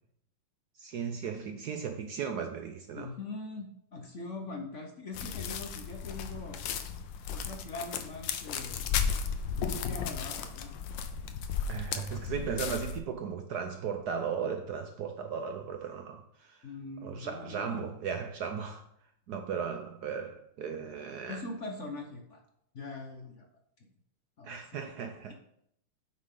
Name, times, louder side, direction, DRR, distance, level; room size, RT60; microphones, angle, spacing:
voice 1, 0.8-3.1 11.7-16.7 17.0-18.8 19.3-21.4 24.4-25.3, right 6 dB, 70° right, 1.0 m, -36 dB
voice 2, 2.9-6.6 7.3-9.0 9.6-10.7 16.6-17.9 21.3-22.4 22.7-23.5 24.4-24.9, left 3 dB, 45° left, 1.0 m, -42 dB
sound 1, 5.1-13.0, left 7 dB, 75° left, 1.4 m, -35 dB
9.5 x 6.5 x 3.8 m
omnidirectional pair, 2.2 m